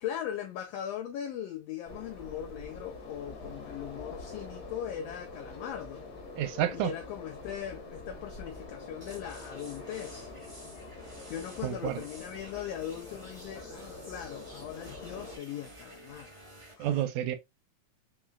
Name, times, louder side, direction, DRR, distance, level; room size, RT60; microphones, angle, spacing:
voice 1, 0.0-6.0 6.7-10.3 11.3-16.3 16.8-17.0, left 10 dB, 85° left, 1.4 m, -39 dB
sound 1, 1.8-15.4, left 3 dB, 70° left, 0.9 m, -45 dB
voice 2, 6.4-6.9 11.6-12.0 16.8-17.4, right 11 dB, 80° right, 1.9 m, -30 dB
sound 2, 9.0-16.7, right 1 dB, 50° right, 0.3 m, -51 dB
4.7 x 3.1 x 2.3 m
omnidirectional pair, 3.4 m